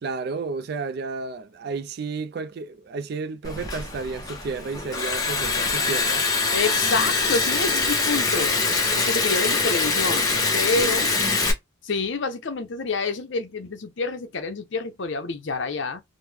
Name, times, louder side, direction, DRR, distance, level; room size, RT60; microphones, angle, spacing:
voice 1, 0.0-6.2, right 4 dB, 50° right, 0.3 m, -32 dB
Liquid, 3.4-11.5, left 3 dB, 20° left, 0.7 m, -24 dB
voice 2, 6.5-8.6 9.0-11.1 11.8-16.0, left 3 dB, 60° left, 0.6 m, -27 dB
3.1 x 2.0 x 3.3 m
head